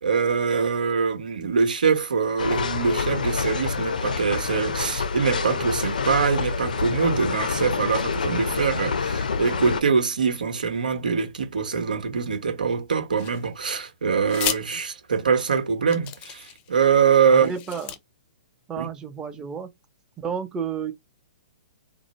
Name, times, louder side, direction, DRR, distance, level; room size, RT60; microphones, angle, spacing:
voice 1, 0.0-17.5 18.8-18.9, right 6 dB, 85° right, 1.1 m, -23 dB
sound 1, 2.4-9.8, left 5 dB, 85° left, 0.5 m, -27 dB
sound 2, 13.2-13.7 14.2-14.6 15.4-15.5 15.9-16.7 17.3-18.0, left 11 dB, 30° left, 0.5 m, -32 dB
voice 2, 17.3-17.9 18.7-19.7 20.2-20.9, right 7 dB, 15° right, 0.7 m, -31 dB
2.7 x 2.1 x 4.0 m
hypercardioid pair, 130°, 4 cm